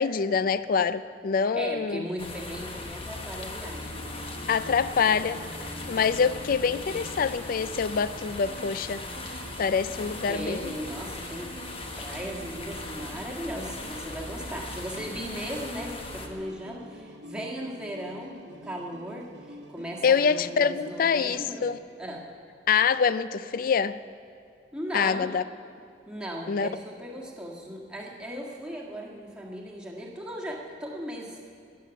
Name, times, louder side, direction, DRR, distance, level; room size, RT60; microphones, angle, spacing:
voice 1, 0.0-2.1 4.5-5.4 5.9-9.0 9.6-10.7 20.0-21.8 22.7-24.0 24.9-25.4 26.5-26.7, left 6 dB, 50° left, 15 dB, 0.4 m, -25 dB
voice 2, 1.5-4.1 10.3-11.5 12.0-21.7 22.0-22.2 24.7-25.3 26.1-31.5, equal, 5° right, -3 dB, 1.7 m, -37 dB
sound 1, 2.2-16.3, left 2 dB, 30° left, 1.2 m, -39 dB
sound 2, 3.6-21.7, equal, 70° right, 0.9 m, -47 dB
19.5 x 7.5 x 7.0 m, 2.3 s
head